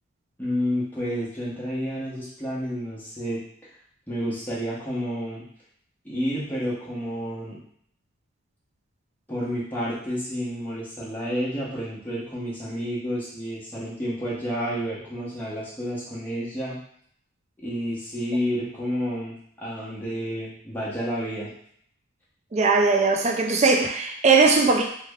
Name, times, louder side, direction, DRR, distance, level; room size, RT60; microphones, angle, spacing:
voice 1, 0.4-3.4 4.1-5.4 6.0-7.6 9.3-16.8 17.6-21.5, equal, 10° left, -7 dB, 0.9 m, -30 dB
voice 2, 22.5-24.8, right 4 dB, 30° right, 3 dB, 0.3 m, -19 dB
3.4 x 2.1 x 3.5 m, 0.65 s
head